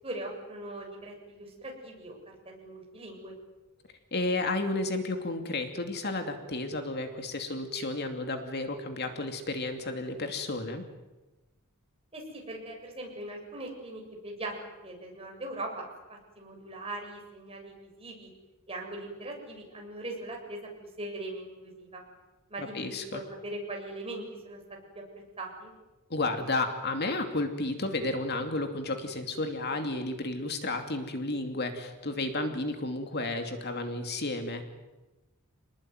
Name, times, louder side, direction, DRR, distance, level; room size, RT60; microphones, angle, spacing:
voice 1, 0.0-3.4 12.1-14.5 14.8-18.3 18.7-20.6 21.0-22.0 22.5-24.6 24.9-25.0 25.4-25.7, right 2 dB, 25° right, 0 dB, 7.5 m, -40 dB
voice 2, 4.1-10.9 22.6-23.2 26.1-34.6, left 2 dB, 50° left, 6 dB, 2.7 m, -32 dB
28.0 x 20.0 x 9.4 m, 1.1 s
head